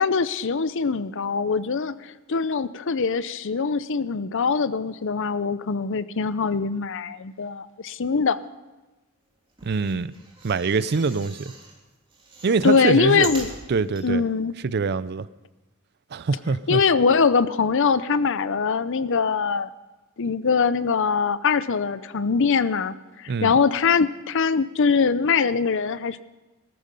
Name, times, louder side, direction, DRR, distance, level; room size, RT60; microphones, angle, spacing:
voice 1, 0.0-8.4 12.6-13.5 14.0-14.6 16.7-19.7 20.2-26.2, left 5 dB, 60° left, 15 dB, 0.6 m, -22 dB
sound 1, 9.5-11.7 12.1-14.1 14.6-14.7 14.9-15.0, right 3 dB, 25° right, 2.9 m, -41 dB
voice 2, 9.6-10.1 10.4-11.5 12.4-13.3 13.7-14.2 14.6-15.3 16.1-16.8 23.3-23.5, right 4 dB, 50° right, 17 dB, 0.5 m, -24 dB
16.5 x 14.5 x 5.3 m, 1.1 s
head